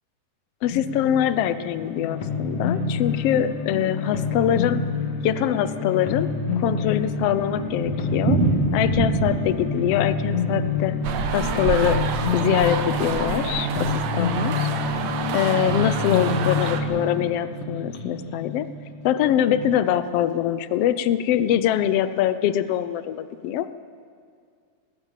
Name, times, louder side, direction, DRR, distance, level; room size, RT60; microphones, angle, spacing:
voice 1, 0.6-4.8 5.2-6.3 6.6-8.4 8.7-11.0 11.3-12.0 12.3-14.7 15.3-18.7 19.0-23.7, left 10 dB, 75° left, 13 dB, 1.4 m, -23 dB
sound 1, 0.6-19.7, left 4 dB, 60° left, 2.9 m, -27 dB
Thunder, 6.4-12.6 12.9-13.0 13.3-13.4 13.6-13.7 14.3-14.6, right 4 dB, 45° right, 2.6 m, -28 dB
sound 2, 11.0-16.8, right 7 dB, 70° right, 2.3 m, -28 dB
20.0 x 18.0 x 7.4 m, 2.3 s
omnidirectional pair, 3.5 m